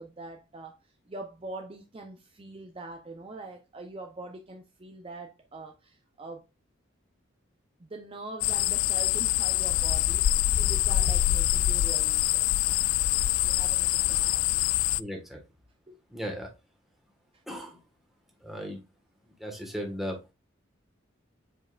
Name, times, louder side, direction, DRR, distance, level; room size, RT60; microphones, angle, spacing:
voice 1, 0.0-6.5 7.8-12.5 13.4-14.5 15.9-16.0 17.3-17.4, right 2 dB, 25° right, 0.6 m, -43 dB
sound 1, 8.4-15.0, left 13 dB, 90° left, 0.3 m, -25 dB
voice 2, 15.0-15.4 16.1-16.5 17.5-17.8 18.4-18.8 19.2-20.3, equal, ahead, 1.5 m, -37 dB
7.3 x 5.2 x 2.4 m
head